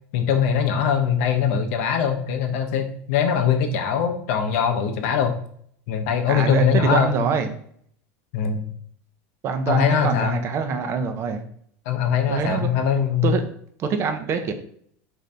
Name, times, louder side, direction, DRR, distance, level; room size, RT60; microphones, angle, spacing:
voice 1, 0.1-5.4 5.9-7.2 8.3-8.6 9.7-10.4 11.9-13.3, left 7 dB, 75° left, 6 dB, 0.6 m, -22 dB
voice 2, 6.3-7.5 9.4-11.5 12.3-12.7 13.2-13.4 13.8-14.5, right 5 dB, 40° right, 7 dB, 0.6 m, -24 dB
3.8 x 2.6 x 3.3 m, 0.63 s
supercardioid pair, 125°, 7 cm